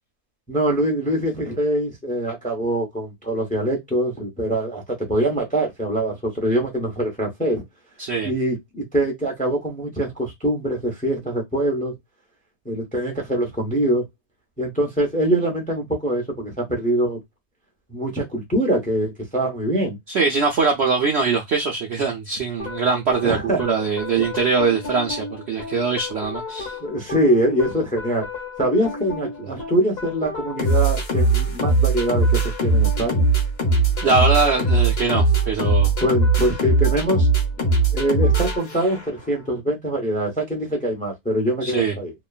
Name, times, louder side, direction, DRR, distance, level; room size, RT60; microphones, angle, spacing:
voice 1, 0.5-7.6 8.2-11.9 12.6-14.0 14.6-17.2 17.9-20.0 23.2-23.6 24.2-24.3 26.8-28.3 28.6-33.3 36.0-37.3 37.9-42.1, right 1 dB, 5° left, 0.7 m, -23 dB
voice 2, 8.0-8.3 20.1-26.7 34.0-35.9 41.6-41.9, right 4 dB, 60° right, 0.7 m, -22 dB
sound 1, 22.6-39.2, right 2 dB, 45° left, 1.1 m, -22 dB
3.0 x 2.2 x 2.4 m
omnidirectional pair, 1.7 m